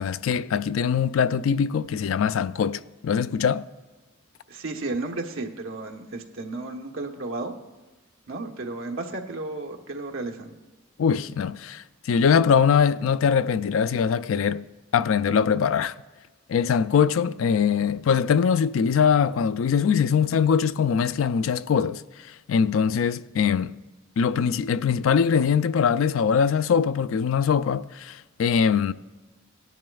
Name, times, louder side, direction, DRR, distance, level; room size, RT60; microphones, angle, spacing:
voice 1, 0.0-3.7 11.0-14.7 14.9-15.9 16.5-23.8 24.2-28.9, left 7 dB, 75° left, 0.3 m, -22 dB
voice 2, 4.5-7.5 8.3-10.5, right 2 dB, 80° right, 1.2 m, -33 dB
17.5 x 10.5 x 2.3 m
head